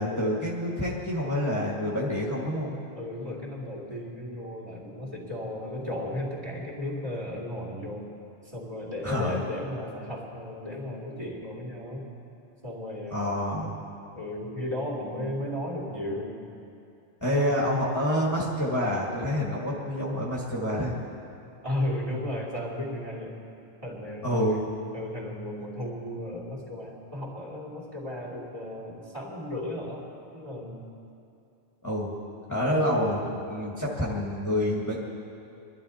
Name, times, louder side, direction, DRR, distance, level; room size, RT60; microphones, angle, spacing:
voice 1, 0.0-2.8 9.0-9.4 13.1-13.7 17.2-20.9 24.2-24.6 31.8-32.1 32.5-35.0, equal, 15° left, -5 dB, 1.7 m, -27 dB
voice 2, 2.9-8.1 8.4-12.1 12.6-13.4 14.1-16.4 17.2-17.6 21.6-23.4 23.8-24.7 24.9-30.9 32.5-32.7, left 1 dB, 30° right, -2 dB, 3.0 m, -35 dB
23.5 x 12.5 x 4.3 m, 2.6 s
omnidirectional pair, 1.2 m